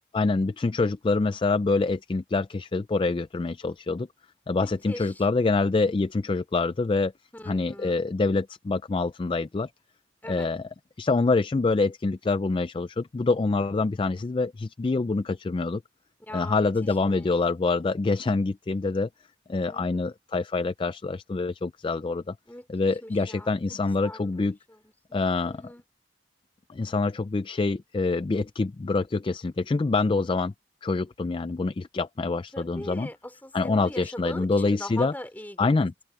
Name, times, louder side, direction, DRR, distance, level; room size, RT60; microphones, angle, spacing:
voice 1, 0.1-4.1 4.5-7.1 7.5-9.7 10.3-10.6 11.0-15.8 16.3-19.1 19.5-22.4 22.7-24.6 25.1-25.6 26.7-30.5 30.8-33.1 33.5-35.1 35.6-35.9, left 3 dB, 25° left, 0.3 m, -26 dB
voice 2, 4.6-5.2 7.3-8.0 10.2-10.5 16.2-17.3 19.7-20.1 22.5-22.6 23.0-23.6 24.0-25.8 32.5-35.7, left 1 dB, 10° left, 3.4 m, -41 dB
open air
head